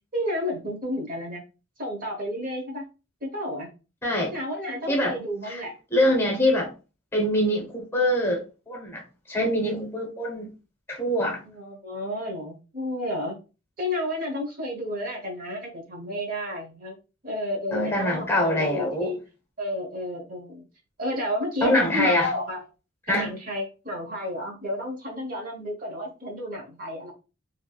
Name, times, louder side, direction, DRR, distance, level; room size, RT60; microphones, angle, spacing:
voice 1, 0.1-1.4 1.8-2.8 3.2-3.7 4.3-5.7 11.4-13.4 13.8-16.9 17.2-19.2 19.6-20.7 21.0-22.6 23.1-27.1, left 1 dB, 45° right, 0.9 m, -31 dB
voice 2, 4.0-4.3 4.9-5.1 5.4-5.6 5.9-6.7 7.1-8.4 8.7-9.0 9.3-10.5 10.9-11.4 17.7-19.1 21.6-22.3 23.1-23.3, left 1 dB, 10° left, 1.0 m, -24 dB
3.2 x 2.7 x 2.3 m
head